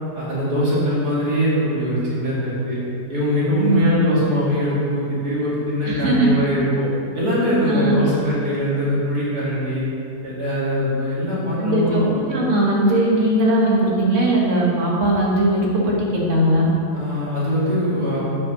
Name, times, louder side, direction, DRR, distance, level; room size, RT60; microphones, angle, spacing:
voice 1, 0.1-2.8 3.1-6.9 7.1-9.8 10.2-12.1 16.9-18.2, equal, 65° right, -9 dB, 2.9 m, -22 dB
voice 2, 3.6-3.9 5.8-6.3 7.7-8.0 11.6-12.0 12.3-16.7, right 1 dB, 45° right, -4 dB, 1.9 m, -19 dB
8.2 x 6.0 x 5.5 m, 2.6 s
omnidirectional pair, 1.8 m